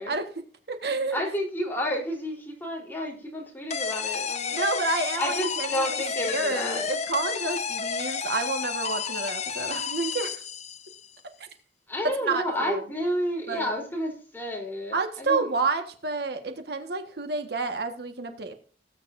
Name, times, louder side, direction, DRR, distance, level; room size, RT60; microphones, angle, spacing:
voice 1, 0.0-1.2 4.5-10.4 11.4-11.5 12.2-12.8 13.5-13.7 14.9-18.5, right 3 dB, 65° right, 6 dB, 1.5 m, -30 dB
voice 2, 1.1-4.6 5.2-6.8 11.9-15.5, equal, 10° left, -1 dB, 3.7 m, -31 dB
sound 1, 3.7-11.1, left 6 dB, 40° left, 1.0 m, -31 dB
18.5 x 8.8 x 2.6 m, 0.42 s
head